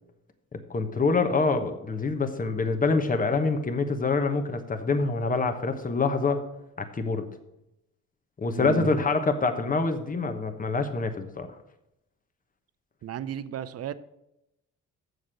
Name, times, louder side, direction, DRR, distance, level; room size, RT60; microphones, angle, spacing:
voice 1, 0.7-6.4 6.9-7.3 8.4-11.5, left 4 dB, 25° left, 7 dB, 1.2 m, -26 dB
voice 2, 8.6-8.9 13.0-13.9, right 10 dB, 55° right, 15 dB, 0.6 m, -33 dB
7.3 x 6.5 x 6.4 m, 0.86 s
cardioid pair, 90°, 30 cm